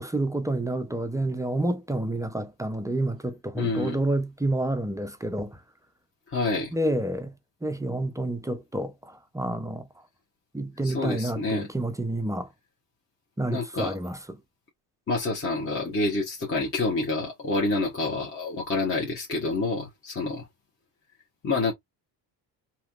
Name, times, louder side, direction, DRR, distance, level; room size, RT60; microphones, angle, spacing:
voice 1, 0.0-5.6 6.7-7.3 7.6-9.9 10.5-12.5 13.4-14.2, right 1 dB, 10° right, 0.4 m, -29 dB
voice 2, 3.6-4.0 6.3-6.7 10.8-11.7 13.5-13.9 15.1-20.5 21.4-21.7, left 3 dB, 30° left, 1.1 m, -28 dB
3.1 x 2.9 x 2.3 m
cardioid pair, 105°, 43 cm